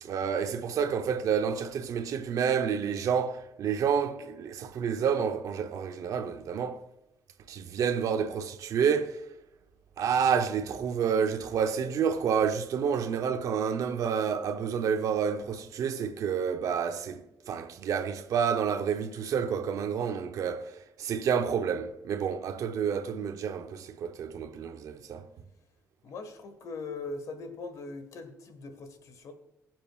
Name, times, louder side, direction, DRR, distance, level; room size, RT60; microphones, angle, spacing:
voice 1, 0.0-6.8 7.5-9.2 10.0-25.3, right 7 dB, 70° right, 0.9 m, -29 dB
voice 2, 26.0-29.3, left 3 dB, 70° left, 1.7 m, -40 dB
21.0 x 7.7 x 2.5 m
cardioid pair, 140°, 6 cm